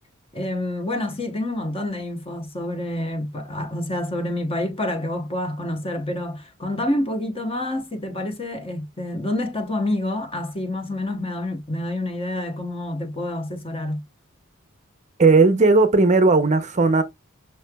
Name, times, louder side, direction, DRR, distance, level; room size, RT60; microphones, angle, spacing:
voice 1, 0.3-14.0, left 1 dB, 25° left, 0.9 m, -28 dB
voice 2, 15.2-17.0, right 3 dB, 35° right, 0.6 m, -16 dB
5.6 x 3.2 x 2.2 m
head